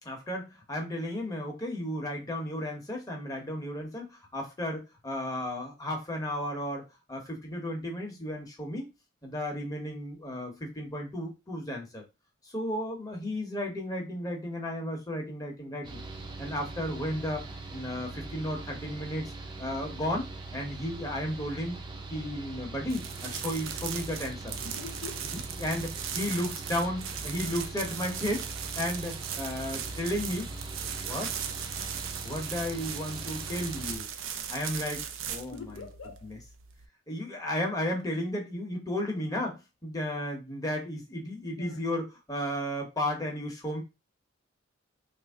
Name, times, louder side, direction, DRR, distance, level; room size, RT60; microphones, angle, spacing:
voice 1, 0.0-6.8 7.1-8.9 9.2-12.0 12.4-16.0 16.4-17.4 17.7-19.3 19.6-21.8 22.1-24.6 25.3-28.5 28.8-30.5 31.0-31.3 32.2-34.1 34.5-35.9 36.2-36.4 37.1-43.8, left 1 dB, 20° left, 0.8 m, -34 dB
Mechanical fan, 15.8-34.0, right 3 dB, 25° right, 0.6 m, -42 dB
sound 1, 22.9-36.9, right 8 dB, 90° right, 0.5 m, -38 dB
voice 2, 24.6-25.3 35.5-36.3 41.6-41.8, left 4 dB, 75° left, 0.5 m, -44 dB
2.9 x 2.6 x 3.4 m
head